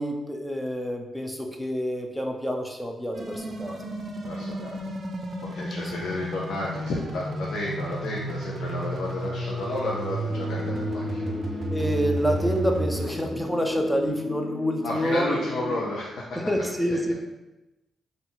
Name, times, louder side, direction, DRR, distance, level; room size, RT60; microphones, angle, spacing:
voice 1, 0.0-3.8 5.8-5.9 11.7-15.4 16.3-17.1, equal, 5° left, 2 dB, 0.5 m, -28 dB
sound 1, 3.1-13.2, right 1 dB, 50° right, 0.5 m, -32 dB
voice 2, 4.2-4.8 5.5-11.6 14.8-16.4 16.9-17.0, left 2 dB, 75° left, -4 dB, 0.6 m, -32 dB
sound 2, 10.3-15.8, left 2 dB, 40° left, 0.7 m, -34 dB
3.9 x 2.4 x 3.9 m, 0.99 s
cardioid pair, 130°, 0 cm